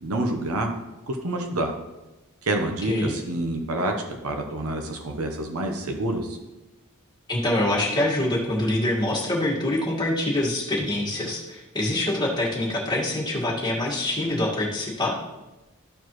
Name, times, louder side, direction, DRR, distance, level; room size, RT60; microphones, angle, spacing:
voice 1, 0.0-0.7 1.1-1.7 2.4-3.9 4.2-6.4, right 1 dB, 90° right, 3 dB, 0.9 m, -27 dB
voice 2, 2.8-3.2 7.3-15.2, left 1 dB, 20° left, -4 dB, 1.8 m, -25 dB
13.5 x 4.8 x 3.1 m, 1.1 s
head